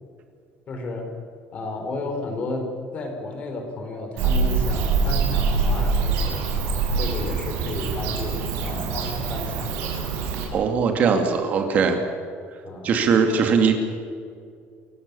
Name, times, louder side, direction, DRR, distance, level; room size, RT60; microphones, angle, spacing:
voice 1, 0.7-1.1 1.5-6.5 6.9-10.0 12.6-12.9, left 2 dB, 30° left, 4 dB, 4.4 m, -32 dB
Bird / Cricket, 4.2-10.4, right 4 dB, 85° right, 6.5 m, -24 dB
voice 2, 10.5-12.0 12.8-13.7, right 5 dB, 40° right, 5 dB, 2.3 m, -20 dB
29.0 x 16.0 x 7.0 m, 2.3 s
cardioid pair, 175°, 4 cm